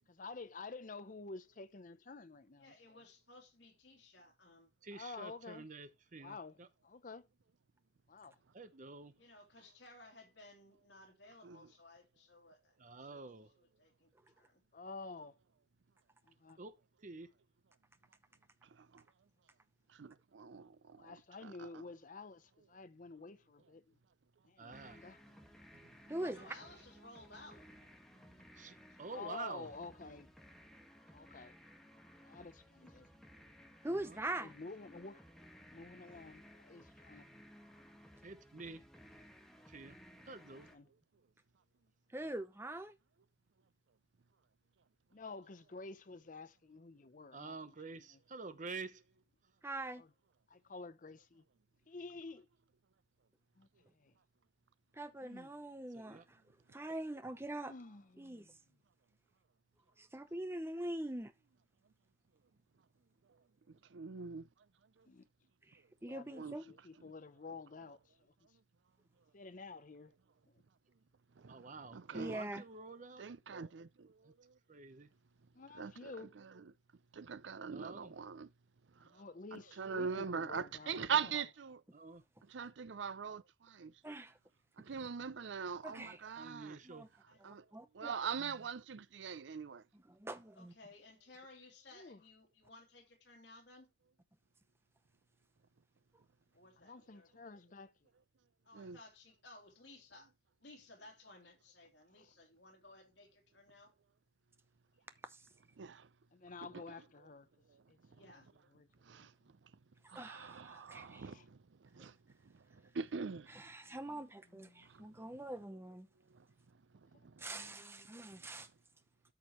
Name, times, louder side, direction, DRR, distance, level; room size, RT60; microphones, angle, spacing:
voice 1, 0.2-2.7 4.9-5.7 6.2-6.6 6.8-7.3 8.1-8.4 14.7-15.4 16.2-16.6 21.0-24.0 24.4-25.2 29.1-30.3 31.1-31.5 32.2-33.1 34.4-35.2 35.6-37.3 40.7-40.9 45.1-47.6 50.0-50.1 50.5-51.4 51.9-52.5 53.6-53.7 53.9-54.1 55.2-55.5 57.6-58.6 65.1-65.3 66.0-68.3 69.3-70.1 75.5-76.3 79.0-81.4 91.9-92.2 96.8-97.9 106.3-107.5 107.9-108.0 108.3-108.4 108.7-109.3 111.2-111.4 113.8-114.2 114.5-114.9 117.1-118.1, left 3 dB, 45° left, 0.7 m, -50 dB
voice 2, 2.6-4.7 9.2-14.6 26.2-27.9 60.3-60.4 85.2-85.3 87.3-87.4 90.5-93.9 96.5-97.3 98.6-100.3 100.6-103.9 108.1-108.5, left 2 dB, 75° left, 3.1 m, -59 dB
voice 3, 4.8-6.7 8.5-9.2 12.8-13.5 16.6-17.3 24.6-25.0 28.6-29.8 33.9-34.2 38.2-38.8 39.7-40.7 47.3-49.0 55.9-56.3 71.5-73.2 74.2-74.3 74.7-75.1 77.7-78.1 81.9-82.2 86.0-87.1, right 4 dB, 45° right, 0.8 m, -49 dB
voice 4, 20.0-21.8 63.9-64.4 66.4-66.6 71.4-71.6 71.9-72.6 73.2-74.1 75.7-76.7 77.1-78.5 79.5-81.8 82.5-83.9 84.8-86.8 87.4-87.6 87.9-89.8 98.7-99.0 105.8-106.1 106.7-106.8 109.1-109.3 110.1-111.6 111.9-112.1 112.9-113.5, right 6 dB, 85° right, 0.5 m, -42 dB
sound 1, 24.7-40.8, equal, ahead, 1.4 m, -59 dB
voice 5, 26.1-26.4 33.8-34.5 42.1-43.0 49.6-50.0 54.9-56.4 56.7-57.7 58.2-58.5 60.0-61.3 65.7-66.6 72.1-72.6 84.0-84.4 85.8-86.2 86.9-87.1 87.5-88.1 90.1-90.7 105.3-105.4 110.1-111.3 113.5-116.1 117.4-118.7, right 1 dB, 15° right, 0.7 m, -43 dB
13.0 x 5.2 x 3.0 m
head